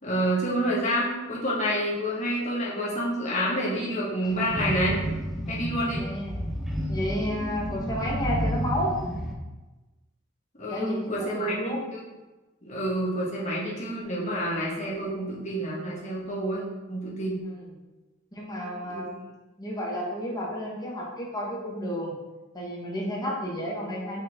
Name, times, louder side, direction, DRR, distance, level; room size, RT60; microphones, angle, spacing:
voice 1, 0.0-5.0 5.5-6.0 10.6-12.0 12.6-16.6 16.9-17.3 18.8-19.1, equal, 35° left, -5 dB, 1.6 m, -28 dB
sound 1, 4.2-9.3, equal, ahead, 0.7 m, -31 dB
voice 2, 5.9-6.4 6.9-9.0 10.7-11.8 17.6-17.7 18.3-19.3 19.6-22.1 22.5-24.2, equal, 20° left, -4 dB, 1.3 m, -31 dB
5.9 x 4.5 x 3.6 m, 1.1 s
head